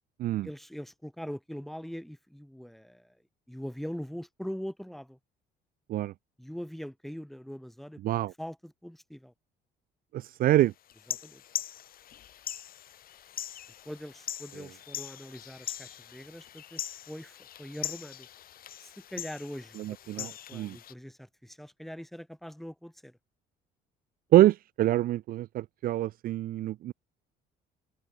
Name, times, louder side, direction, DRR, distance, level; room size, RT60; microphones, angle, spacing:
voice 1, 0.4-3.1 3.5-5.2 6.4-8.0 8.4-9.3 11.2-11.4 13.9-18.3 18.8-23.1, equal, ahead, 1.8 m, -42 dB
voice 2, 8.0-8.3 10.1-10.7 14.6-14.7 19.8-20.8 24.3-26.9, right 14 dB, 60° right, 0.5 m, -25 dB
sound 1, 10.9-20.9, left 11 dB, 60° left, 3.9 m, -41 dB
cardioid pair, 110°, 17 cm